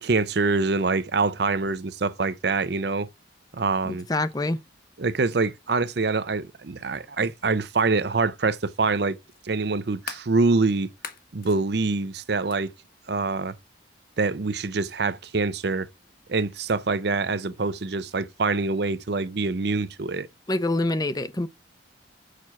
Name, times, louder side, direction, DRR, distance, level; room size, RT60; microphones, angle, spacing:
voice 1, 0.0-3.1 3.5-4.1 5.0-9.2 9.4-10.9 11.3-12.7 13.1-13.6 14.2-15.9 16.3-20.3, right 3 dB, 55° right, 0.6 m, -25 dB
voice 2, 3.9-4.6 20.5-21.5, left 2 dB, 20° left, 0.6 m, -26 dB
sound 1, 9.3-10.3 10.9-11.6 12.5-12.6, left 6 dB, 45° left, 1.5 m, -39 dB
6.6 x 6.1 x 5.7 m
head